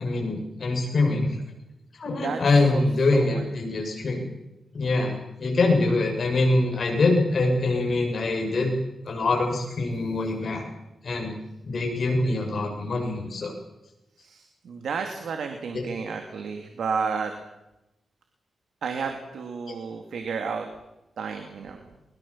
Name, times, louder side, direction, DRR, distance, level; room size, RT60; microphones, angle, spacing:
voice 1, 0.0-1.4 1.9-4.2 4.7-8.7 9.1-10.6 11.0-11.3 11.6-13.5 15.7-15.8, left 2 dB, 50° left, 1 dB, 7.3 m, -24 dB
voice 2, 2.0-2.8 3.1-3.5 14.2-17.3 18.8-20.7 21.2-21.9, right 5 dB, 80° right, 5 dB, 2.4 m, -32 dB
22.5 x 21.5 x 7.4 m, 0.94 s
wide cardioid pair, 140°, 0 cm